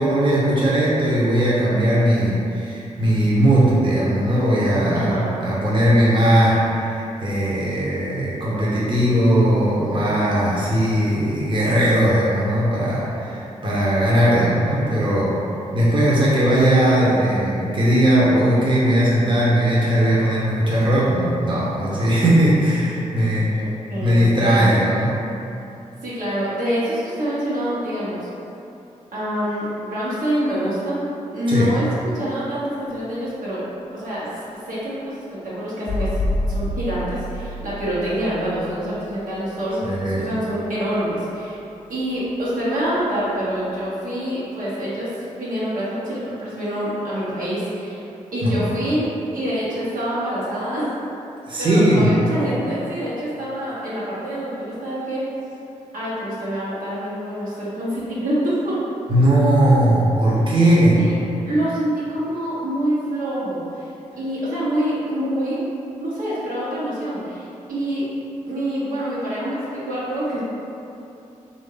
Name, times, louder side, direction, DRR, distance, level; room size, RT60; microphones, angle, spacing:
voice 1, 0.0-15.4 15.7-23.6 24.0-25.3 31.5-31.7 39.8-40.3 48.4-48.6 51.5-52.2 59.1-61.0, right 1 dB, 35° right, -7 dB, 0.9 m, -18 dB
voice 2, 4.9-5.3 23.6-24.7 26.0-28.3 29.1-31.0 31.3-31.9 32.1-33.6 33.9-36.1 36.4-41.6 41.9-48.0 48.3-50.9 51.6-55.2 55.9-58.8 60.3-60.7 61.0-61.1 61.4-63.9 64.2-65.7 66.0-68.0 68.5-70.4, equal, 75° right, -10 dB, 1.1 m, -26 dB
sound 1, 35.9-40.4 42.2-42.3, left 1 dB, 45° left, 0.5 m, -28 dB
3.1 x 2.6 x 3.8 m, 2.8 s
supercardioid pair, 45°, 14 cm